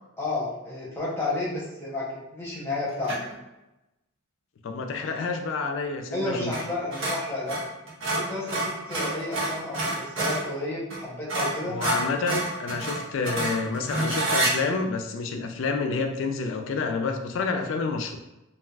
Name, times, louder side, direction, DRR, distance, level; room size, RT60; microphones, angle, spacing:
voice 1, 0.2-3.3 5.0-5.1 6.1-7.6 8.1-11.8, left 2 dB, 10° left, -7 dB, 0.8 m, -31 dB
sound 1, 3.0-3.4 6.5-6.7 6.9-10.5 10.9-11.0 11.3-14.5, right 1 dB, 70° right, 0.9 m, -28 dB
voice 2, 4.6-6.6 11.7-18.2, left 4 dB, 70° left, 6 dB, 0.3 m, -29 dB
3.3 x 2.3 x 2.3 m, 0.96 s
head